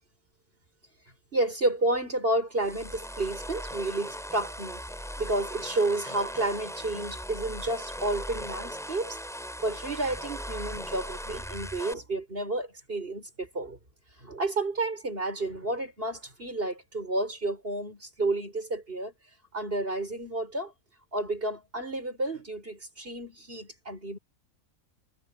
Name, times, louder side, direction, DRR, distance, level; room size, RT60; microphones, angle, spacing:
voice 1, 1.3-4.8 5.2-9.2 9.6-13.8 14.2-19.1 19.5-20.7 21.1-24.2, right 2 dB, 45° right, 5.9 m, -31 dB
sound 1, 2.6-11.9, equal, ahead, 5.7 m, -39 dB
omnidirectional pair, 1.4 m